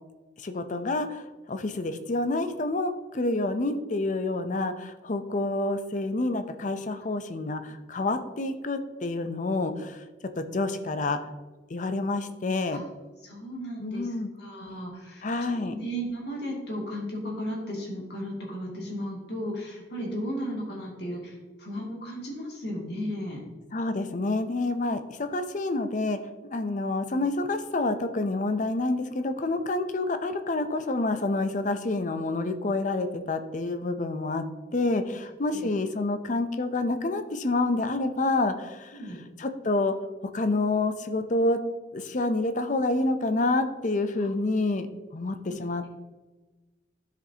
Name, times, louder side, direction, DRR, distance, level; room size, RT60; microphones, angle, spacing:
voice 1, 0.4-1.2 1.5-10.0 10.4-11.2 11.7-12.8 13.8-14.3 15.2-15.8 23.7-26.2 26.5-34.4 34.7-39.0 39.4-39.9 40.3-41.6 41.9-45.9, left 2 dB, 45° left, 9 dB, 0.6 m, -28 dB
voice 2, 13.2-15.3 15.6-23.4 35.5-35.7 38.9-39.2 44.2-44.3, equal, 60° left, -3 dB, 2.4 m, -35 dB
13.0 x 5.0 x 2.8 m, 1.2 s
head